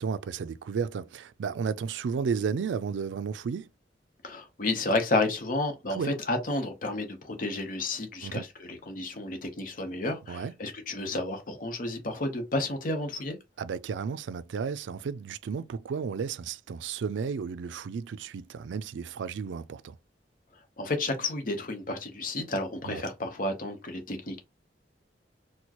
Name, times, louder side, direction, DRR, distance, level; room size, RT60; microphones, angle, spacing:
voice 1, 0.0-3.7 5.9-6.1 8.2-8.4 10.3-10.5 13.6-20.0 22.8-23.0, right 6 dB, 90° right, 0.4 m, -33 dB
voice 2, 4.2-13.4 20.8-24.4, left 2 dB, 50° left, 0.9 m, -31 dB
4.3 x 2.2 x 2.9 m
head